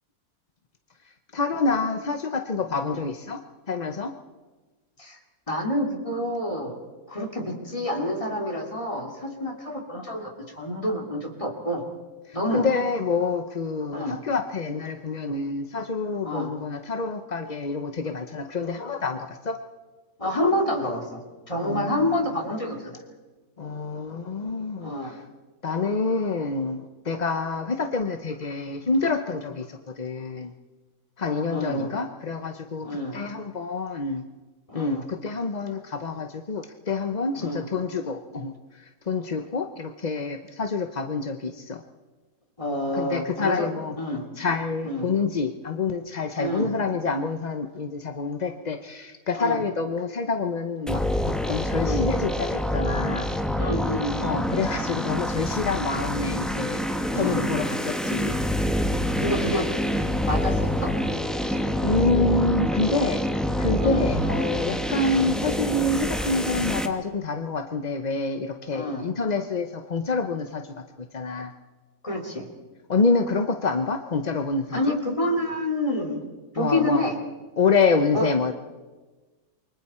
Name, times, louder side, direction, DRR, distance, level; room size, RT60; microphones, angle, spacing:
voice 1, 1.3-3.4 3.7-4.1 12.3-19.6 21.6-22.1 23.6-25.1 25.6-30.5 31.2-34.2 34.7-38.5 39.1-41.8 42.9-44.0 44.4-51.0 51.3-53.3 54.2-56.8 57.1-58.4 61.5-70.6 71.0-71.5 72.9-74.8 76.6-77.0 77.6-78.5, left 4 dB, 35° left, 6 dB, 0.7 m, -27 dB
voice 2, 5.5-6.7 7.1-11.8 12.3-12.6 13.9-14.2 16.2-16.5 20.2-21.2 21.5-22.9 24.8-25.2 31.5-31.9 32.8-33.2 34.7-35.0 37.4-37.6 42.6-43.7 44.0-44.2 44.8-45.1 46.4-46.7 49.3-49.6 51.7-52.1 53.5-54.1 57.1-57.5 59.2-59.7 60.3-60.9 63.7-64.1 68.7-69.1 72.0-72.5 74.7-76.2 76.5-77.2 78.1-78.3, left 1 dB, 20° left, 1 dB, 2.9 m, -28 dB
sound 1, 50.9-66.9, equal, ahead, 1.1 m, -26 dB
29.0 x 23.5 x 4.4 m, 1.3 s
omnidirectional pair, 1.8 m